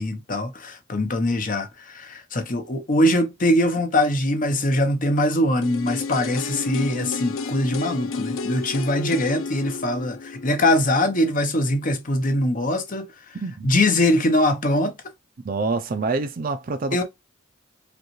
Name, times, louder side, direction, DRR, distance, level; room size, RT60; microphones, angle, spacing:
voice 1, 0.0-13.1 13.6-14.9 16.9-17.0, left 1 dB, 40° left, 0.8 m, -22 dB
sound 1, 5.6-11.5 11.8-11.9, left 4 dB, 80° left, 0.5 m, -32 dB
voice 2, 13.4-13.7 15.4-17.0, right 3 dB, 45° right, 0.5 m, -26 dB
5.1 x 2.3 x 3.0 m
head